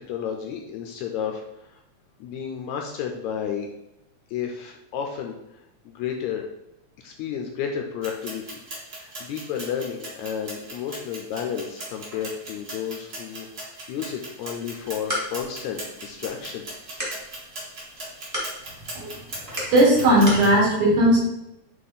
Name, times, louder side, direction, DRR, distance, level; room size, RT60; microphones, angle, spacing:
voice 1, 0.1-1.4 1.7-1.8 2.2-3.7 4.3-5.4 5.9-6.5 7.0-8.6 8.9-16.6, left 8 dB, 80° left, 2 dB, 1.9 m, -32 dB
sound 1, 8.0-20.6, right 1 dB, 35° right, 1.8 m, -39 dB
sound 2, 14.7-20.5, left 1 dB, 15° right, 0.7 m, -36 dB
voice 2, 19.7-21.2, right 1 dB, 65° right, -7 dB, 3.8 m, -17 dB
7.6 x 3.0 x 4.1 m, 0.87 s
omnidirectional pair, 3.6 m